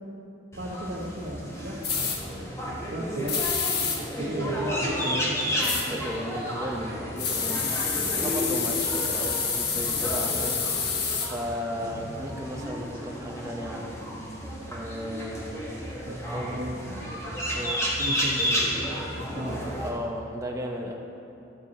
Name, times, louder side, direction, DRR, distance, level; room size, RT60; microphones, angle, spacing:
sound 1, 0.5-19.9, equal, 15° left, 1.6 m, -32 dB
voice 1, 0.6-3.4 4.0-5.3 16.1-17.1 18.0-18.7 19.2-19.6, equal, 75° right, -8 dB, 1.7 m, -35 dB
sound 2, 1.8-2.2 3.3-4.0 5.6-5.9 7.2-11.3, left 5 dB, 60° left, 1.3 m, -28 dB
voice 2, 5.6-10.6 11.2-13.8 14.6-15.7 16.3-16.5 17.5-17.8 19.8-21.0, equal, 15° right, -1 dB, 0.9 m, -35 dB
13.5 x 6.8 x 4.3 m, 2.7 s
head